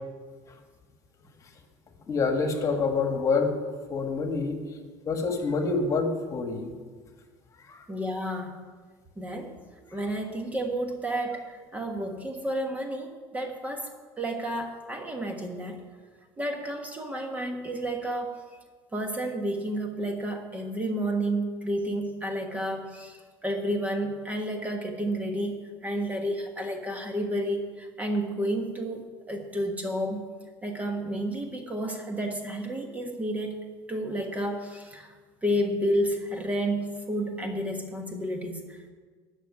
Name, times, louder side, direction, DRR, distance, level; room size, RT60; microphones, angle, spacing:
voice 1, 2.1-3.5 3.9-4.6 5.1-6.7 7.7-7.8, left 4 dB, 35° left, 4 dB, 1.7 m, -26 dB
voice 2, 7.9-8.6 9.2-9.5 9.9-15.8 16.4-18.4 18.9-25.6 25.8-30.2 30.6-33.6 33.9-35.1 35.4-38.9, right 1 dB, 15° right, 4 dB, 1.4 m, -31 dB
12.5 x 6.4 x 9.7 m, 1.5 s
cardioid pair, 130°, 10 cm